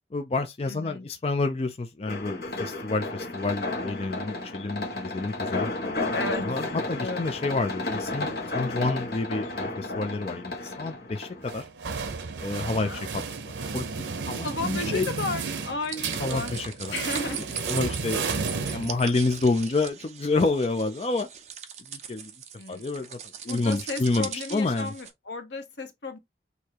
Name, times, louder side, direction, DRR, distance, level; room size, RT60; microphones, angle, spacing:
voice 1, 0.1-5.7 6.4-8.3 8.5-11.6 12.4-13.2 13.7-15.1 16.2-16.9 17.7-21.3 21.9-22.3 22.7-23.2 23.4-24.9, left 3 dB, 35° left, 0.4 m, -29 dB
voice 2, 0.6-1.1 5.5-5.7 6.1-6.5 7.0-7.2 12.6-13.0 14.4-16.5 16.9-17.5 18.7-18.9 22.6-23.0 23.4-26.2, left 3 dB, 85° left, 1.1 m, -34 dB
sound 1, 2.1-11.5, left 2 dB, 60° left, 1.2 m, -32 dB
sound 2, 11.5-19.4, right 4 dB, 90° right, 0.7 m, -32 dB
sound 3, 15.8-25.1, right 8 dB, 40° right, 0.7 m, -40 dB
6.4 x 2.7 x 2.9 m
head